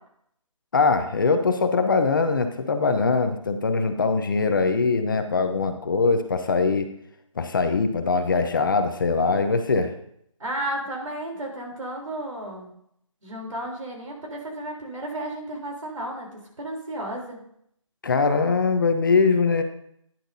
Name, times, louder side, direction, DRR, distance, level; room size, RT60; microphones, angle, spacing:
voice 1, 0.7-6.9 7.4-9.9 18.0-19.6, left 4 dB, 40° left, 7 dB, 0.8 m, -22 dB
voice 2, 10.4-12.7 13.2-17.4, right 1 dB, 75° right, -1 dB, 3.7 m, -33 dB
10.0 x 10.0 x 2.7 m, 0.71 s
figure-of-eight pair, 165°, 17 cm